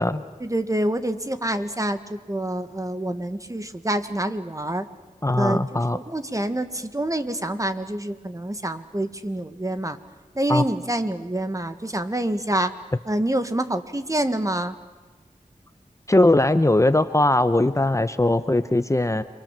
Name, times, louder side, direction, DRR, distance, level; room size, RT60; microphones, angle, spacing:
voice 1, 0.4-4.9 5.4-10.0 10.3-12.7 13.1-14.7, right 1 dB, 25° right, 10 dB, 1.7 m, -27 dB
voice 2, 5.2-6.0 10.5-10.6 16.1-19.2, left 1 dB, 20° left, 11 dB, 0.9 m, -20 dB
30.0 x 23.5 x 7.6 m, 1.3 s
wide cardioid pair, 55°, 14 cm